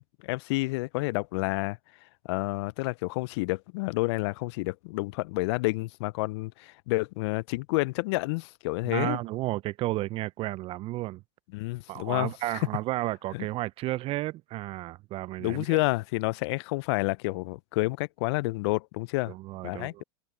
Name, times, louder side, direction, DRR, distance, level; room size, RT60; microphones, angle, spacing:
voice 1, 0.2-1.8 2.2-9.2 11.5-12.3 13.3-13.5 15.4-19.3 19.6-20.0, left 23 dB, 60° left, 0.4 m, -29 dB
voice 2, 8.9-11.2 11.9-15.8 19.3-20.0, right 17 dB, 35° right, 0.4 m, -32 dB
hypercardioid pair, 105°, 16 cm